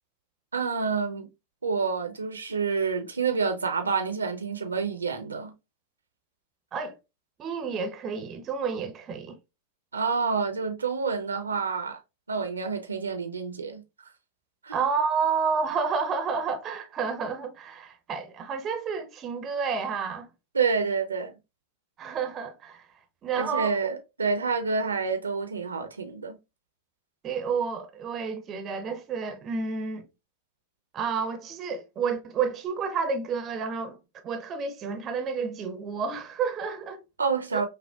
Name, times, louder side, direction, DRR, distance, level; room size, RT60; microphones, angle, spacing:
voice 1, 0.5-1.3 1.6-5.5 9.9-12.0 12.3-13.8 14.6-14.8 20.5-21.3 23.3-26.4 37.2-37.7, right 5 dB, 75° right, 0.6 m, -28 dB
voice 2, 7.4-9.4 14.7-20.3 22.0-22.9 23.2-23.8 27.2-30.1 30.9-34.0 34.2-37.0 37.5-37.6, right 5 dB, 30° right, 0.6 m, -30 dB
5.4 x 2.1 x 2.2 m
figure-of-eight pair, 90°, 0 cm